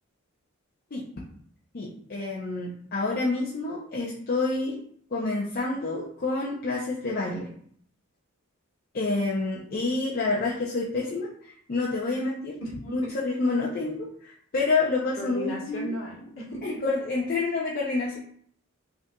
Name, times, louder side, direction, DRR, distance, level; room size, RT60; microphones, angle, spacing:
voice 1, 1.7-4.8 5.1-7.5 8.9-12.6 12.9-15.9 16.6-18.2, left 3 dB, 45° left, -4 dB, 0.5 m, -28 dB
voice 2, 12.6-13.1 15.2-16.6, equal, 70° left, -3 dB, 1.2 m, -35 dB
5.4 x 2.5 x 2.2 m, 0.62 s
head